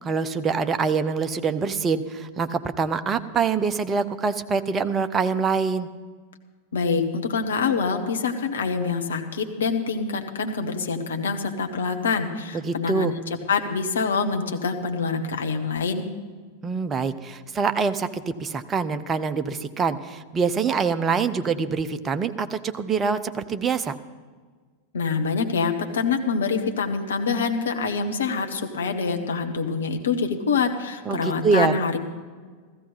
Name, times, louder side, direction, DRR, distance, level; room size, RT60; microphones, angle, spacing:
voice 1, 0.0-5.9 12.6-13.1 16.6-24.0 31.1-31.7, right 5 dB, 20° right, 10 dB, 0.7 m, -25 dB
voice 2, 6.7-16.0 24.9-32.0, left 5 dB, 65° left, 5 dB, 1.3 m, -25 dB
15.0 x 14.5 x 4.1 m, 1.5 s
figure-of-eight pair, 90°, 0 cm